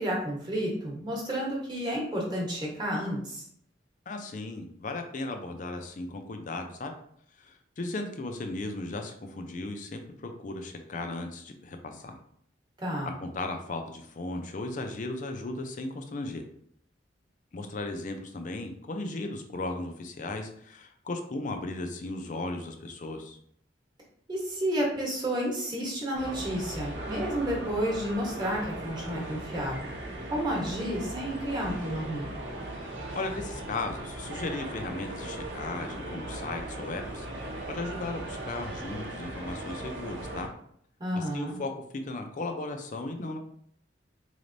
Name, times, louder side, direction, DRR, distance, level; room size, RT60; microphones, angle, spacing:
voice 1, 0.0-3.4 12.8-13.1 24.3-29.9 30.3-32.3 41.0-41.6, equal, 25° right, -3 dB, 1.1 m, -31 dB
voice 2, 4.1-6.9 7.4-12.2 13.2-16.4 17.5-23.4 33.1-37.3 37.7-40.5 41.1-41.7 42.0-43.4, left 2 dB, 40° left, 5 dB, 0.5 m, -36 dB
sound 1, 26.1-40.5, right 1 dB, 65° right, 0.8 m, -38 dB
4.0 x 3.3 x 2.6 m, 0.67 s
head